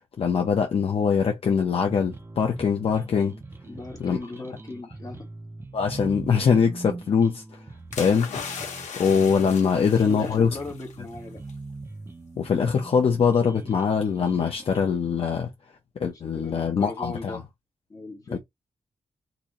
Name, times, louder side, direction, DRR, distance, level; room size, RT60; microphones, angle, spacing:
voice 1, 0.2-3.4 4.0-4.2 5.7-7.4 8.0-8.3 9.0-10.5 12.4-15.5 16.0-17.4 18.3-18.4, left 6 dB, 55° left, 0.7 m, -22 dB
sound 1, 1.9-14.9, right 3 dB, 20° right, 0.5 m, -42 dB
voice 2, 3.7-5.3 9.7-11.4 16.1-17.4 17.9-18.4, left 3 dB, 30° left, 1.5 m, -38 dB
sound 2, 7.9-11.0 11.3-11.5, left 6 dB, 85° left, 1.1 m, -37 dB
4.0 x 2.7 x 3.0 m
wide cardioid pair, 135°, 12 cm